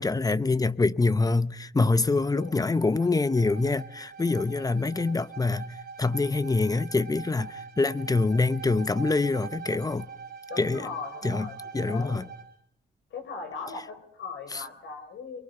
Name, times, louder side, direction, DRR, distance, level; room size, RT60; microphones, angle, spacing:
voice 1, 0.0-5.7 6.0-10.1 10.6-10.9 11.2-11.5 11.7-12.2 14.5-14.6, left 3 dB, 20° left, 0.9 m, -25 dB
Bowed string instrument, 2.1-12.6, right 6 dB, 50° right, 3.6 m, -43 dB
voice 2, 2.2-2.6 4.7-5.2 10.5-12.2 13.1-15.4, left 4 dB, 70° left, 6.8 m, -39 dB
28.5 x 23.0 x 5.7 m
cardioid pair, 90°, 20 cm